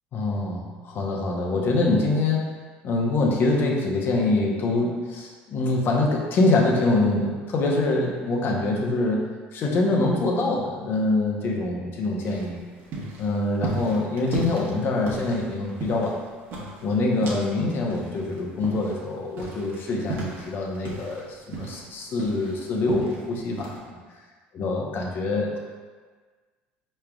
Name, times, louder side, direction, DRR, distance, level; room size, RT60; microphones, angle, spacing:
voice 1, 0.1-2.5 2.8-12.6 13.2-16.2 16.8-23.7 24.6-25.6, left 2 dB, 50° left, -1 dB, 0.8 m, -24 dB
sound 1, 12.2-17.6 17.9-21.2 21.5-23.2 23.6-23.8, right 3 dB, 55° right, 1.0 m, -35 dB
4.7 x 3.2 x 2.4 m, 1.5 s
supercardioid pair, 90°, 5 cm